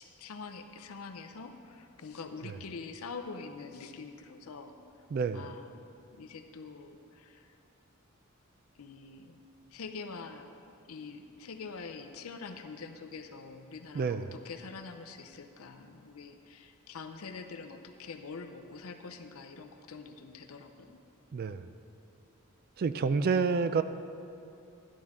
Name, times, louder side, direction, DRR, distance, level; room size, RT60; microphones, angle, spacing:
voice 1, 0.0-4.7 5.3-7.5 8.8-9.4 9.7-10.5 10.9-21.0, left 4 dB, 70° left, 7 dB, 0.6 m, -45 dB
voice 2, 5.1-5.5 13.9-14.3 21.3-21.7 22.8-23.8, right 5 dB, 45° right, 12 dB, 0.3 m, -29 dB
11.5 x 10.5 x 3.6 m, 2.6 s
head